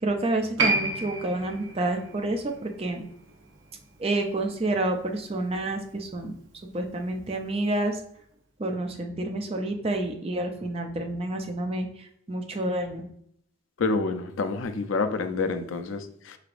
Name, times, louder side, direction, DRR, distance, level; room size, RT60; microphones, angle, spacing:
voice 1, 0.0-3.0 4.0-6.3 6.6-8.0 8.6-13.0, right 2 dB, 30° right, 0.5 m, -29 dB
Piano, 0.6-7.5 7.8-7.9, right 2 dB, 70° right, 1.1 m, -33 dB
voice 2, 13.8-16.4, left 3 dB, 80° left, 0.4 m, -28 dB
4.8 x 3.2 x 2.5 m
head